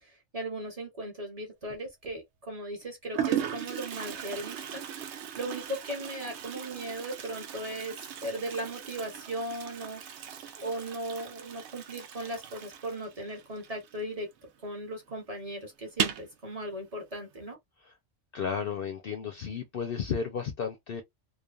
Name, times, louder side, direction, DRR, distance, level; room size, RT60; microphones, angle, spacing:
voice 1, 0.0-4.8 5.3-10.0 10.5-17.6, right 1 dB, 35° right, 0.9 m, -37 dB
Toilet flush, 1.6-2.1 2.8-2.9 3.1-14.4 14.7-14.8 15.1-15.2 15.9-16.3, right 9 dB, 70° right, 0.8 m, -37 dB
voice 2, 18.3-21.0, left 6 dB, 60° left, 0.6 m, -33 dB
3.2 x 2.1 x 2.3 m
omnidirectional pair, 1.3 m